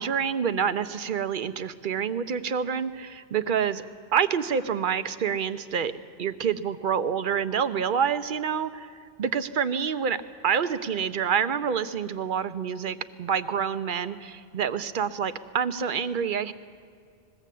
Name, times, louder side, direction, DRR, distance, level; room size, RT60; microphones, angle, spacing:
voice 1, 0.0-3.8 4.1-5.9 6.2-10.2 10.4-16.5, right 7 dB, 50° right, 11 dB, 0.8 m, -27 dB
21.0 x 16.0 x 8.4 m, 2.3 s
omnidirectional pair, 1.2 m